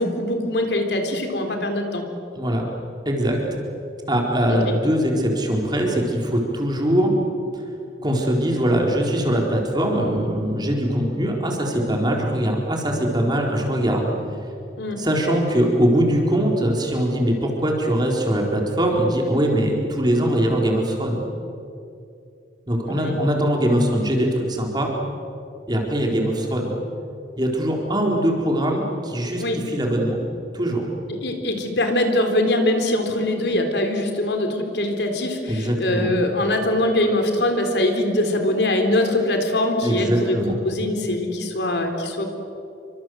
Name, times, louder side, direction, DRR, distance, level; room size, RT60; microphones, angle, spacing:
voice 1, 0.0-2.1 4.5-4.8 14.8-15.0 22.9-23.2 29.4-29.6 31.2-40.4 40.6-42.2, left 1 dB, 70° left, 5 dB, 4.0 m, -22 dB
voice 2, 3.0-3.4 4.1-7.1 7.5-7.6 8.0-14.1 15.0-21.2 22.7-24.9 25.7-26.7 27.4-30.2 30.5-30.9 35.5-36.1 39.8-40.6, equal, 25° right, 0 dB, 4.4 m, -22 dB
29.0 x 25.0 x 8.0 m, 2.6 s
head